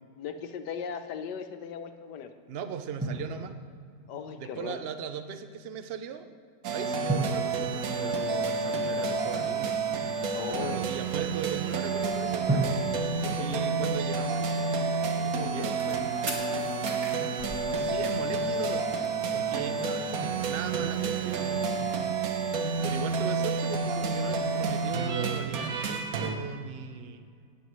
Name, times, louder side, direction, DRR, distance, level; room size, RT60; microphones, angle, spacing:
voice 1, 0.2-2.3 4.1-4.8 10.3-10.8 13.2-14.0 15.3-16.5 19.5-20.1, left 7 dB, 80° left, 8 dB, 1.4 m, -39 dB
voice 2, 2.5-3.5 4.4-6.3 6.7-9.8 10.5-12.6 13.3-14.5 15.2-15.7 17.7-18.9 19.3-21.9 22.8-27.3, right 7 dB, 85° right, 8 dB, 0.5 m, -38 dB
Drum, 3.0-4.1 7.1-8.9 12.5-14.5, right 1 dB, 10° right, 0.9 m, -34 dB
sound 1, 6.6-26.4, right 4 dB, 60° right, 1.3 m, -30 dB
sound 2, 15.8-16.0 16.3-18.4 18.7-18.8 19.0-19.1 19.3-19.9 20.1-21.3 21.7-23.2, right 2 dB, 45° right, 1.6 m, -41 dB
17.5 x 8.9 x 3.1 m, 2.2 s
omnidirectional pair, 1.8 m